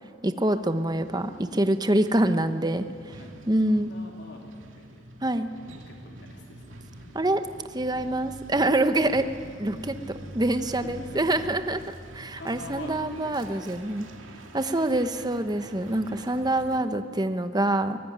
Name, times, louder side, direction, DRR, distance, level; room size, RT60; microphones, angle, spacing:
voice 1, 0.2-3.2 3.5-3.9 5.2-5.5 7.1-7.4 7.7-9.3 9.6-11.8 12.1-14.1 14.5-18.0, right 1 dB, 20° right, 9 dB, 1.0 m, -25 dB
Truck, 0.6-16.8, right 1 dB, 75° right, 2.5 m, -45 dB
voice 2, 3.2-5.0 5.3-7.3 10.7-11.4 12.4-14.1 16.3-16.7, left 2 dB, 55° left, 1 dB, 3.2 m, -47 dB
23.5 x 19.5 x 9.6 m, 2.2 s
head